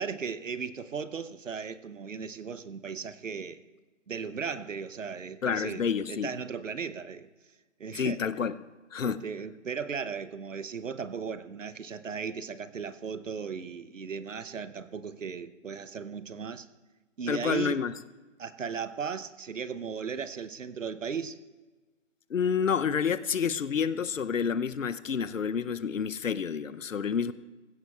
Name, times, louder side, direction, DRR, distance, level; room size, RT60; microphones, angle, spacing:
voice 1, 0.0-3.6 4.1-7.3 7.8-8.2 9.0-16.7 17.2-17.8 18.4-21.4, right 6 dB, 80° right, 14 dB, 0.9 m, -36 dB
voice 2, 5.4-6.3 7.9-8.6 8.9-9.2 17.3-17.9 22.3-27.3, left 6 dB, 90° left, 15 dB, 0.7 m, -29 dB
19.0 x 16.0 x 2.4 m, 1.2 s
figure-of-eight pair, 165°, 38 cm